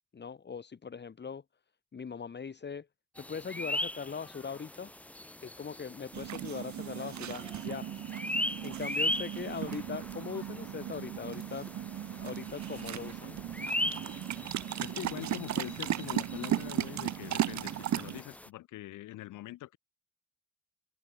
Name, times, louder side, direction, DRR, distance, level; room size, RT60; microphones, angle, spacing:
voice 1, 0.1-1.4 1.9-2.9 3.2-4.9 5.4-7.9 8.6-11.7 12.2-13.5, left 6 dB, 35° left, 2.2 m, -40 dB
sound 1, 3.2-18.5, left 1 dB, 5° left, 0.6 m, -39 dB
sound 2, 6.1-18.2, right 11 dB, 65° right, 2.2 m, -36 dB
voice 2, 14.8-19.8, left 15 dB, 90° left, 5.7 m, -43 dB
cardioid pair, 90°, 30 cm